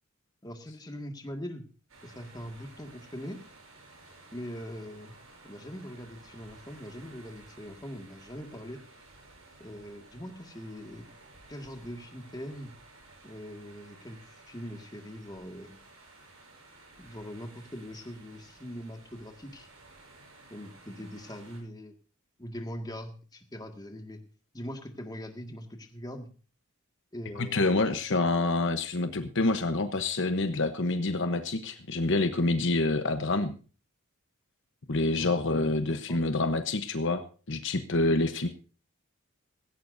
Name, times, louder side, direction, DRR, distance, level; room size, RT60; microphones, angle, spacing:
voice 1, 0.4-1.7 2.0-3.4 4.3-5.2 5.4-8.8 9.6-11.1 11.5-12.7 13.2-14.2 14.5-15.8 17.0-19.7 20.5-21.9 22.4-24.2 24.5-26.3 27.1-27.8 35.1-36.2, equal, 20° left, 4 dB, 1.9 m, -42 dB
sound 1, 1.9-21.6, right 2 dB, 70° right, 7.4 m, -54 dB
voice 2, 27.4-33.6 34.9-38.5, left 2 dB, 60° left, 8 dB, 1.0 m, -27 dB
17.0 x 16.5 x 2.7 m, 0.37 s
head